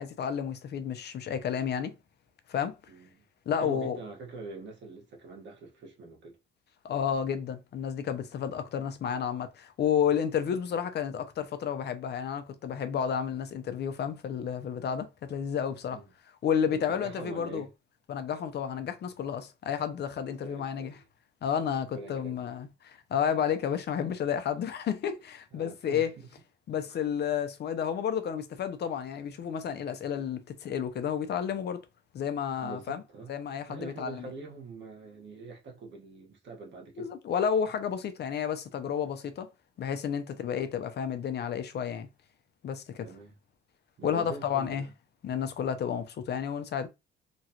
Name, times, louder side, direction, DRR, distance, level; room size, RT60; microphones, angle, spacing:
voice 1, 0.0-1.9 2.5-2.8 3.5-4.0 6.8-16.0 16.4-17.6 18.1-21.0 21.4-26.1 26.7-31.8 32.1-33.0 33.3-34.2 37.0-39.5 39.8-42.1 42.6-43.1 44.0-44.9 45.2-46.9, left 8 dB, 55° left, 0.6 m, -31 dB
voice 2, 2.9-3.2 3.6-6.4 10.3-10.4 15.9-16.1 16.7-17.7 20.2-21.0 21.9-22.4 25.5-26.3 26.9-27.1 32.6-33.4 33.7-37.1 40.3-40.5 43.0-43.3 44.0-44.9, right 3 dB, 65° right, 1.4 m, -44 dB
3.0 x 2.4 x 2.8 m
cardioid pair, 90°, 20 cm